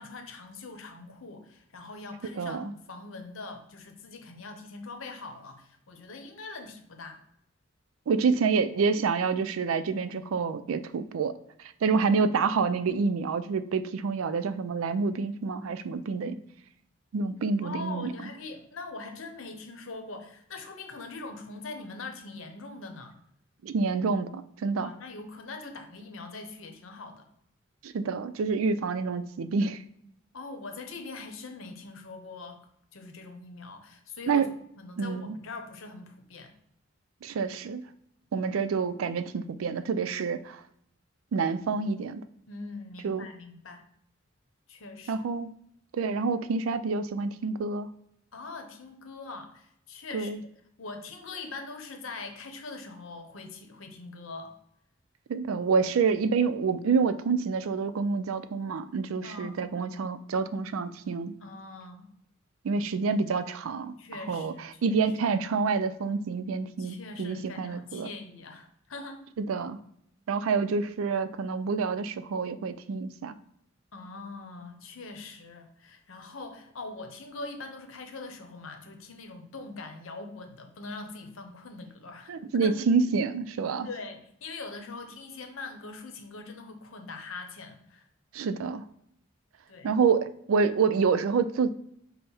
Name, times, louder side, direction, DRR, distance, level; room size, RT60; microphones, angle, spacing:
voice 1, 0.0-7.2 11.9-12.0 17.6-23.2 24.7-27.3 30.3-32.7 32.9-36.5 42.5-43.8 44.7-45.3 48.3-50.5 50.8-54.5 59.2-59.5 61.4-62.1 64.0-65.0 66.8-69.2 73.9-82.3 82.6-82.7 83.8-88.1 89.7-89.9, left 3 dB, 80° left, 6 dB, 0.8 m, -42 dB
voice 2, 2.2-2.7 8.1-11.3 11.8-16.4 17.1-18.1 23.6-24.9 27.8-29.8 34.3-34.5 35.0-35.4 37.2-37.8 38.3-40.6 41.3-42.2 43.0-43.3 45.1-45.5 45.9-47.9 50.1-50.4 55.3-61.3 62.6-64.0 64.3-64.5 64.8-68.1 69.4-69.8 70.3-73.3 82.3-83.9 88.3-88.8 89.8-91.7, right 5 dB, 90° right, 12 dB, 0.4 m, -27 dB
5.4 x 2.1 x 4.3 m, 0.74 s
head